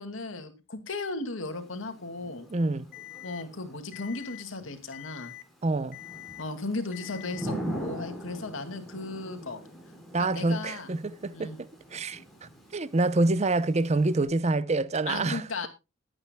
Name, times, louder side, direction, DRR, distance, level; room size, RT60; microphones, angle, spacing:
voice 1, 0.0-2.5 3.2-5.3 6.4-9.6 10.2-10.9 11.3-11.6 15.1-15.7, left 3 dB, 90° left, 2.3 m, -36 dB
Thunder / Rain, 1.5-14.3, equal, ahead, 4.7 m, -42 dB
voice 2, 2.5-2.9 5.6-6.0 10.1-15.7, right 2 dB, 35° right, 0.6 m, -27 dB
Alarm, 2.9-3.4 3.9-4.4 4.9-5.4 5.9-6.4 6.9-7.4, left 18 dB, 50° left, 1.3 m, -44 dB
21.0 x 8.8 x 2.2 m
head